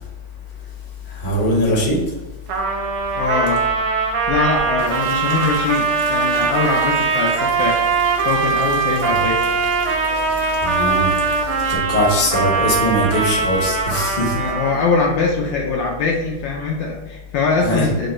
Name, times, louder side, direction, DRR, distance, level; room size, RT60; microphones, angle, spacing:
voice 1, 1.1-2.0 10.6-11.1 11.7-14.4 17.6-17.9, equal, 40° left, -4 dB, 0.7 m, -20 dB
Trumpet, 2.5-14.9, right 5 dB, 85° right, 1.5 m, -21 dB
voice 2, 3.1-3.6 4.3-7.8 8.2-9.4 14.3-18.1, left 4 dB, 75° left, -1 dB, 1.2 m, -22 dB
sound 1, 4.8-11.8, right 2 dB, 65° right, 1.0 m, -37 dB
3.8 x 2.2 x 4.0 m, 1.1 s
omnidirectional pair, 2.4 m